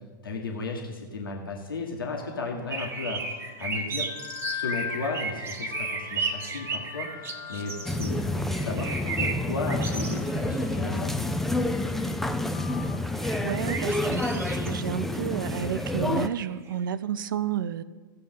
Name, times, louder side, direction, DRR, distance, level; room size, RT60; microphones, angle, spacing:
voice 1, 0.2-3.2 3.6-4.1 4.5-7.1 7.5-8.2 8.5-11.1, left 3 dB, 85° left, 1.6 m, -34 dB
sound 1, 2.2-14.9, left 9 dB, 35° left, 0.7 m, -42 dB
sound 2, 2.7-8.1 8.5-10.5 10.7-10.8 13.1-14.7 15.3-16.0 16.5-16.7, right 4 dB, 20° right, 1.0 m, -34 dB
sound 3, 7.9-16.3, left 1 dB, ahead, 0.5 m, -29 dB
voice 2, 13.4-17.8, right 9 dB, 70° right, 0.4 m, -31 dB
16.5 x 6.7 x 3.8 m
hypercardioid pair, 105°, 11 cm